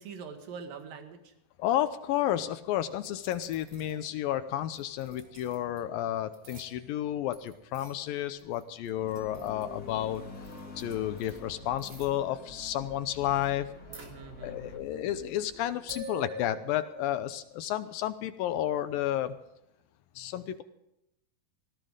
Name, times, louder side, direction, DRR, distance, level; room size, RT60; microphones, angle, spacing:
voice 1, 0.0-1.3 13.9-15.2, right 5 dB, 60° right, 5 dB, 3.3 m, -45 dB
voice 2, 1.6-10.2 10.8-13.7 14.4-19.4 20.2-20.6, left 12 dB, 80° left, 11 dB, 2.2 m, -31 dB
sound 1, 3.0-4.1 4.7-5.8 6.2-7.1 7.3-9.8 10.2-10.3 10.4-11.4 11.8-12.2 13.4-13.5 13.7-14.7 15.1-17.2, right 1 dB, 35° right, 3.5 m, -48 dB
sound 2, 9.0-14.8, left 2 dB, 30° left, 2.3 m, -47 dB
19.0 x 16.0 x 3.8 m, 0.83 s
omnidirectional pair, 4.8 m